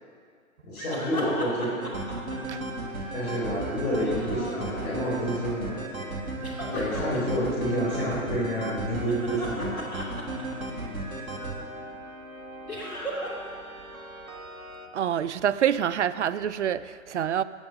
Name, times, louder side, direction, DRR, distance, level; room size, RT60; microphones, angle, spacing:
voice 1, 0.6-1.8 3.1-5.8 6.7-9.9, equal, 45° left, 3.6 m, -29 dB
sound 1, 0.8-3.1 3.8-5.2 6.4-7.2 8.9-10.9 12.7-13.5 13.8-13.9 16.8-16.9, equal, 80° left, 2.6 m, -37 dB
sound 2, 1.8-14.9, right 2 dB, 75° right, 1.6 m, -36 dB
voice 2, 14.9-17.4, right 9 dB, 55° right, 0.5 m, -26 dB
16.0 x 7.2 x 5.3 m
figure-of-eight pair, 120°, 42 cm